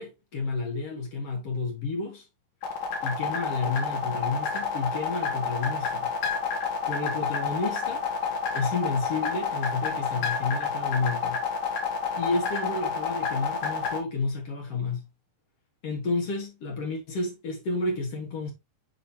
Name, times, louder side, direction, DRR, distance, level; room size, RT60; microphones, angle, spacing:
voice 1, 0.0-2.3 3.0-6.1 6.9-8.1 8.5-11.4 12.2-15.1 15.8-18.5, left 3 dB, 60° left, 1.8 m, -31 dB
sound 1, 2.6-14.0, left 6 dB, 75° left, 3.3 m, -29 dB
7.0 x 5.0 x 2.7 m
omnidirectional pair, 4.1 m